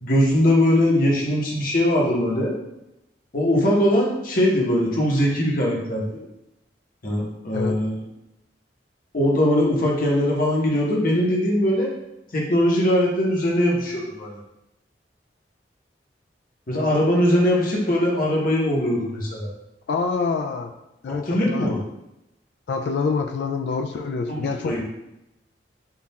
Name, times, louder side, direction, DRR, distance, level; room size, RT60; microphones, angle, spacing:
voice 1, 0.0-2.5 3.3-6.2 7.0-8.0 9.1-11.9 12.3-14.4 16.7-19.5 21.1-21.8 24.3-24.8, left 1 dB, 50° left, -3 dB, 0.9 m, -21 dB
voice 2, 19.9-20.7 21.0-21.8 22.7-24.8, left 4 dB, 70° left, 5 dB, 0.3 m, -26 dB
3.8 x 2.4 x 4.1 m, 0.88 s
head